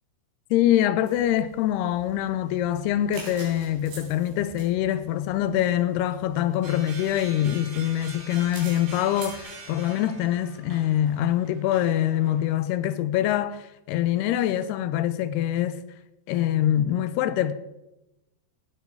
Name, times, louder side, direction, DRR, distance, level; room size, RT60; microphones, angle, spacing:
voice 1, 0.5-15.8 16.3-17.5, left 12 dB, 85° left, 2.7 m, -24 dB
sound 1, 1.0-9.4, right 3 dB, 85° right, 5.5 m, -47 dB
sound 2, 6.6-12.5, right 4 dB, 65° right, 4.5 m, -44 dB
17.5 x 8.3 x 4.7 m
omnidirectional pair, 4.5 m